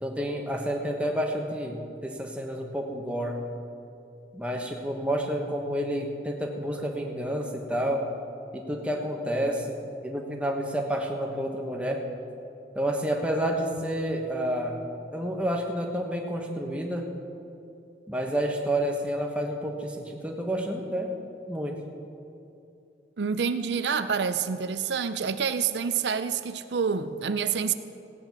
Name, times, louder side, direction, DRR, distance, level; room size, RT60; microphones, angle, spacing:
voice 1, 0.0-3.4 4.3-8.0 8.5-9.8 10.0-12.0 12.7-14.8 15.1-17.1 18.1-21.1 21.5-21.8, equal, 5° right, 1 dB, 1.2 m, -29 dB
voice 2, 23.2-27.7, right 6 dB, 80° right, 11 dB, 0.5 m, -27 dB
16.5 x 8.9 x 6.0 m, 2.7 s
head